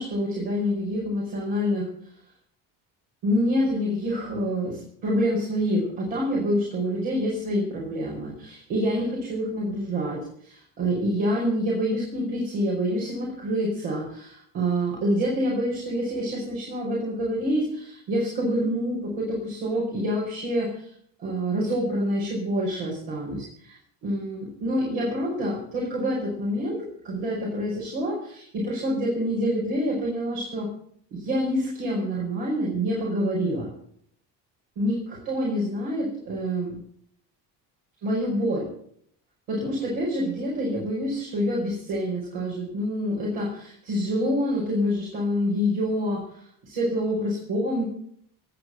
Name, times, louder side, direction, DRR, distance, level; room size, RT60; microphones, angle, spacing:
voice 1, 0.0-1.9 3.2-20.9 21.2-26.8 27.0-30.7 31.1-33.7 34.8-36.8 38.0-38.7 39.5-47.9, equal, 85° right, -4 dB, 5.2 m, -27 dB
18.0 x 8.5 x 7.9 m, 0.64 s
supercardioid pair, 65°, 47 cm